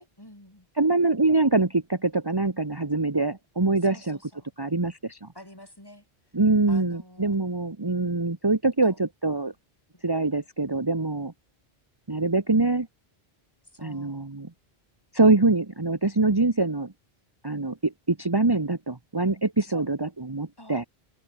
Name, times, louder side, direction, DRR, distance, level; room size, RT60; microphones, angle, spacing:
voice 1, 0.0-0.7 3.8-4.5 5.3-6.1 6.7-7.3 8.8-9.0 9.9-10.0 13.7-14.3 19.7-19.9 20.6-20.9, left 1 dB, 20° left, 4.3 m, -47 dB
voice 2, 0.8-4.2 4.6-5.3 6.3-9.5 10.0-11.3 12.1-12.9 13.8-14.5 15.1-16.9 17.4-20.8, right 3 dB, 25° right, 1.3 m, -24 dB
omnidirectional pair, 1.0 m